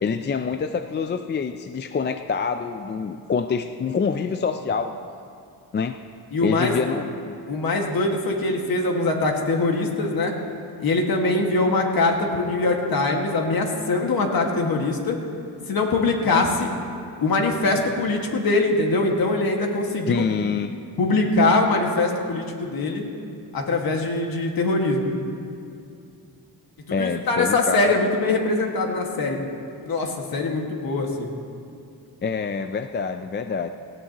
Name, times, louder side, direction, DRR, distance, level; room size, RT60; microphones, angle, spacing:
voice 1, 0.0-5.0 5.7-6.0 6.4-7.4 20.0-20.7 26.9-28.0 32.2-33.7, left 5 dB, 30° left, 7 dB, 0.4 m, -26 dB
voice 2, 6.3-6.7 7.5-10.3 10.8-15.2 15.7-16.7 17.2-20.2 21.0-23.1 23.5-25.1 26.9-29.4 29.8-31.3, left 2 dB, 60° left, 1 dB, 1.9 m, -22 dB
18.5 x 16.0 x 3.0 m, 2.5 s
wide cardioid pair, 125°, 41 cm